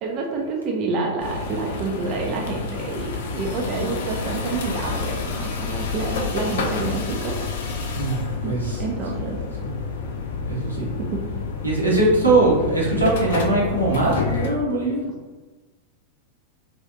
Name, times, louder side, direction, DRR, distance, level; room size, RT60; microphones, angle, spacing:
voice 1, 0.0-7.4 8.4-9.4 10.6-11.2, right 3 dB, 35° right, 1 dB, 0.4 m, -28 dB
sound 1, 1.2-14.5, left 4 dB, 60° left, 0.4 m, -29 dB
voice 2, 7.9-8.8 9.6-9.7 10.5-10.9 11.6-15.0, right 2 dB, 85° right, -5 dB, 0.8 m, -21 dB
2.8 x 2.4 x 2.4 m, 1.2 s
figure-of-eight pair, 90°, 0 cm